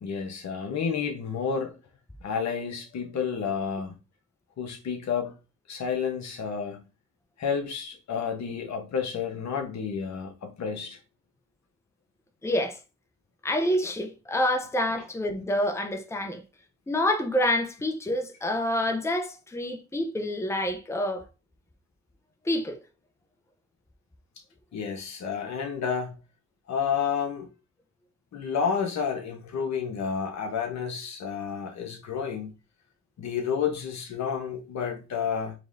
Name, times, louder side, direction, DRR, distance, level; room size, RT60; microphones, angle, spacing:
voice 1, 0.0-1.7 2.2-3.9 4.6-5.3 5.7-6.8 7.4-11.0 24.7-26.2 26.7-27.5 28.3-32.5 33.2-35.5, left 6 dB, 65° left, 1.2 m, -30 dB
voice 2, 12.4-12.8 13.4-16.4 16.9-21.3 22.4-22.8, left 1 dB, 10° left, 0.8 m, -27 dB
4.6 x 3.1 x 2.7 m
supercardioid pair, 55°, 30 cm